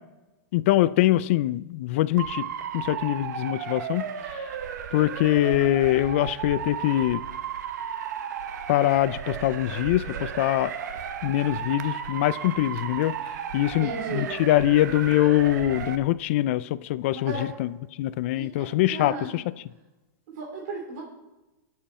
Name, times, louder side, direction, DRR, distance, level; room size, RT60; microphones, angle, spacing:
voice 1, 0.5-2.4 2.7-4.1 4.9-7.2 8.7-10.7 11.2-13.1 13.5-17.3 17.6-17.7 18.0-19.4, left 15 dB, 45° left, 0.4 m, -23 dB
Motor vehicle (road) / Siren, 2.2-16.0, right 8 dB, 70° right, 1.0 m, -34 dB
voice 2, 13.8-14.3 17.1-17.5 18.3-19.4 20.3-21.0, right 3 dB, 50° right, 2.8 m, -35 dB
22.0 x 7.6 x 4.3 m
supercardioid pair, 160°, 10 cm